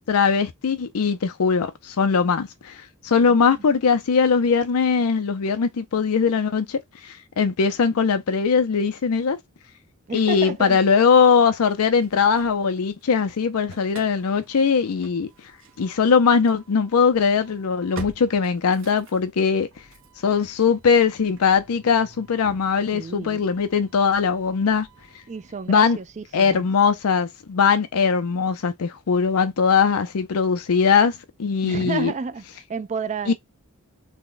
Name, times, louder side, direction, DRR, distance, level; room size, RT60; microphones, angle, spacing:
voice 1, 0.1-9.4 10.1-15.3 15.8-19.7 20.2-24.9 25.7-26.0 26.3-32.1 33.3-33.4, left 5 dB, 90° left, 0.5 m, -20 dB
voice 2, 10.1-10.8 22.9-23.4 25.3-26.7 31.6-33.3, right 5 dB, 35° right, 0.4 m, -31 dB
Engine starting / Slam, 11.7-13.1 13.4-26.4, right 3 dB, 65° right, 1.1 m, -47 dB
3.4 x 2.2 x 3.8 m
head